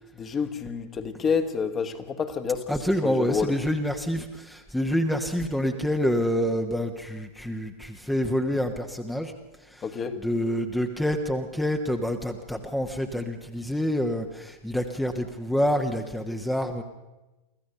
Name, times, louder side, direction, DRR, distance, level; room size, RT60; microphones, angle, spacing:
voice 1, 0.1-2.7 3.0-3.5 9.8-10.2, left 5 dB, 25° left, 1.6 m, -28 dB
voice 2, 2.7-9.3 9.6-9.9 10.2-16.8, equal, 5° left, 1.2 m, -27 dB
25.0 x 15.5 x 6.7 m
figure-of-eight pair, 90°, 0 cm